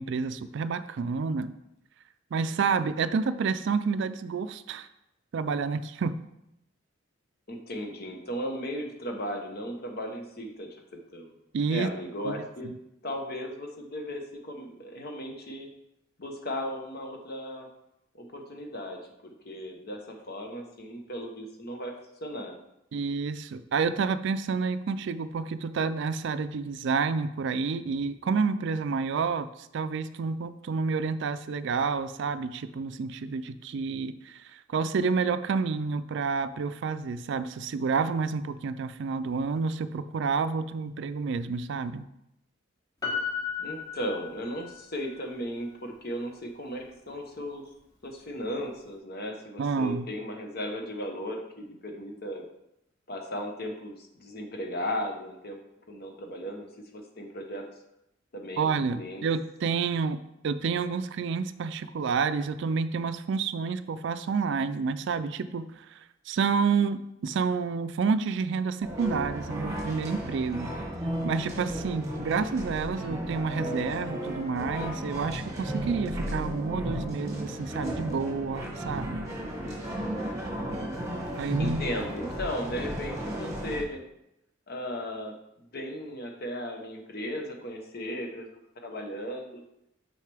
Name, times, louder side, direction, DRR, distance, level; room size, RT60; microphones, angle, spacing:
voice 1, 0.0-1.5 2.3-4.9 5.3-6.1 11.5-11.9 12.2-12.4 22.9-42.0 49.6-50.1 58.6-60.2 60.4-70.7 71.2-79.2 81.4-81.8, right 5 dB, 60° right, 12 dB, 0.4 m, -29 dB
voice 2, 7.5-10.7 11.1-11.3 11.7-12.7 13.0-15.7 16.2-17.7 18.2-21.9 22.2-22.5 43.6-47.6 48.0-52.5 53.1-55.6 55.9-56.7 56.9-57.6 58.3-58.7 58.9-59.2 81.6-84.0 84.7-85.3 85.7-88.5 88.8-89.6, equal, 50° left, 3 dB, 1.0 m, -36 dB
Piano, 43.0-44.8 45.1-45.2, left 6 dB, 20° left, 1.2 m, -34 dB
sound 1, 68.8-83.8, equal, 15° right, 1.5 m, -34 dB
6.5 x 5.6 x 3.4 m, 0.83 s
head